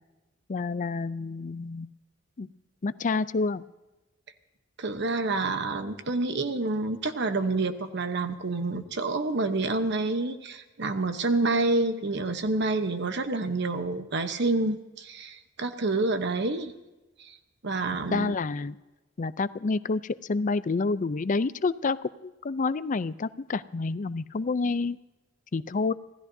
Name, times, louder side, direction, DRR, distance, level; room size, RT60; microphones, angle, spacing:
voice 1, 0.5-1.9 2.4-2.5 2.8-3.6 18.1-18.8 19.2-25.0 25.5-25.9, left 3 dB, 40° left, 15 dB, 0.5 m, -28 dB
voice 2, 4.8-16.7 17.2-17.4 17.6-18.4, right 3 dB, 60° right, 9 dB, 0.9 m, -28 dB
26.0 x 16.5 x 2.7 m, 1.1 s
head